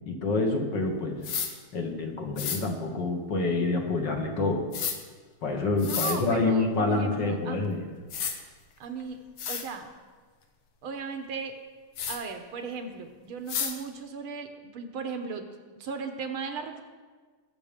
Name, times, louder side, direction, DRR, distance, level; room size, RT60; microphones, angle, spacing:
voice 1, 0.1-1.3 1.7-4.7 5.4-7.8, left 3 dB, 55° left, 2 dB, 2.0 m, -27 dB
sound 1, 1.2-1.5 2.4-2.6 4.7-5.0 5.8-6.2 7.6-7.7 8.1-8.3 9.0-9.1 9.4-9.6 12.0-12.2 13.5-13.7, left 7 dB, 80° left, 2.1 m, -31 dB
voice 2, 5.7-7.6 8.8-9.9 10.8-11.6 12.1-15.5 15.8-16.8, right 5 dB, 75° right, 6 dB, 2.0 m, -36 dB
21.0 x 7.1 x 5.2 m, 1.4 s
omnidirectional pair, 2.4 m